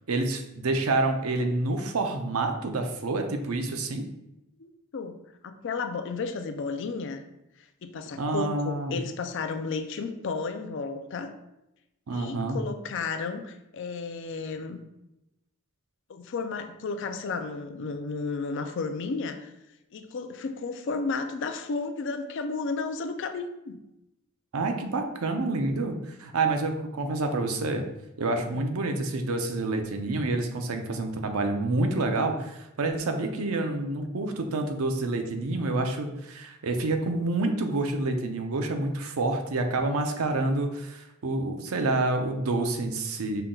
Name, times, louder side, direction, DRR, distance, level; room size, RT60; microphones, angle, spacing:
voice 1, 0.1-4.0 8.2-9.0 12.1-12.6 24.5-27.8 28.2-43.4, right 2 dB, 80° right, 5 dB, 0.6 m, -28 dB
voice 2, 4.6-5.2 5.4-7.2 7.8-11.3 12.1-14.8 16.1-19.5 19.9-23.8 28.4-28.6, left 4 dB, 60° left, 8 dB, 0.4 m, -33 dB
5.6 x 2.3 x 3.7 m, 0.90 s
head